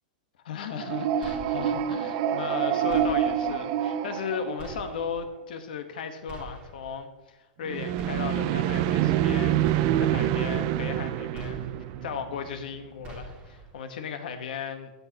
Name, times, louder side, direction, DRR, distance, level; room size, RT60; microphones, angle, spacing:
voice 1, 0.4-9.6 10.0-11.6 12.0-14.9, left 6 dB, 75° left, 8 dB, 1.3 m, -36 dB
sound 1, 0.7-5.1 7.6-12.6, right 10 dB, 45° right, 0.6 m, -27 dB
sound 2, 1.2-1.9 2.9-3.6 4.6-5.3 6.3-7.0 8.0-8.7 9.6-10.3 11.3-12.0 13.0-13.7, right 2 dB, 25° right, 1.6 m, -44 dB
13.5 x 8.1 x 3.0 m, 1.2 s
supercardioid pair, 150°, 5 cm